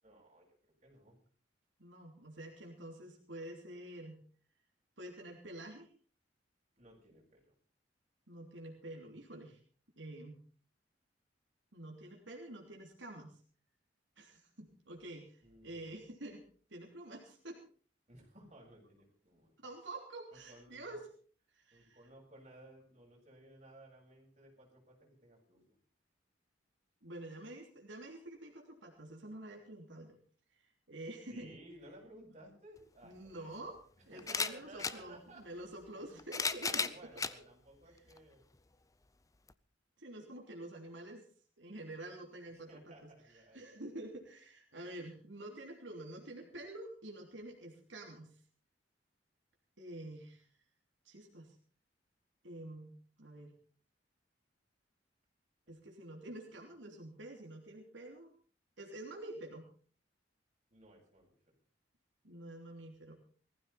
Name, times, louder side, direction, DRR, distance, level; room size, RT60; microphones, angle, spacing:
voice 1, 0.0-1.2 6.8-7.5 14.9-15.0 15.4-15.8 18.1-19.6 20.3-21.0 21.7-25.8 31.3-33.5 34.1-35.6 36.1-36.2 36.6-38.4 42.5-43.8 60.7-61.5, right 1 dB, 35° right, -2 dB, 7.4 m, -58 dB
voice 2, 1.8-4.2 5.0-5.9 8.3-9.6 10.0-10.4 11.7-13.4 14.2-16.4 16.7-17.6 19.6-21.0 21.5-22.0 27.0-30.2 30.5-31.6 33.0-33.8 34.1-36.9 40.0-41.2 41.6-42.9 43.5-48.4 49.8-50.5 51.0-51.5 52.4-52.9 53.2-53.5 55.7-58.3 58.8-59.6 62.2-63.1, right 1 dB, 85° right, 1 dB, 3.2 m, -48 dB
sound 1, 32.8-32.9 34.2-35.0 36.0-37.4 38.1-38.2 39.5-39.6, left 5 dB, 20° left, 0.7 m, -35 dB
19.5 x 15.0 x 4.3 m, 0.44 s
head